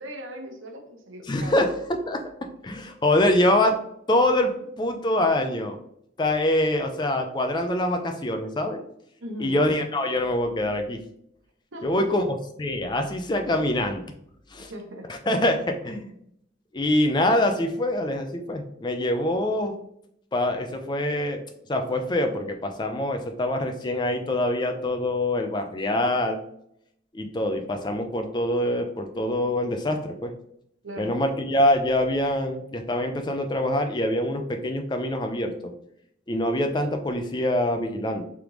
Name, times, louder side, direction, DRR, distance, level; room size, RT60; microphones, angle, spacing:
voice 1, 0.0-1.6 9.2-9.6 11.7-12.1 14.7-15.1 30.8-31.2, equal, 85° right, 3 dB, 0.9 m, -38 dB
voice 2, 1.3-1.8 2.1-2.2 2.6-3.8 4.1-5.8 6.2-8.8 9.4-11.0 11.8-14.0 14.5-14.7 15.1-16.1 16.7-19.8 20.3-21.4 21.7-26.4 27.1-30.3 31.0-35.7 36.3-38.2, left 1 dB, 20° left, 5 dB, 0.4 m, -24 dB
3.7 x 3.4 x 3.0 m, 0.72 s
head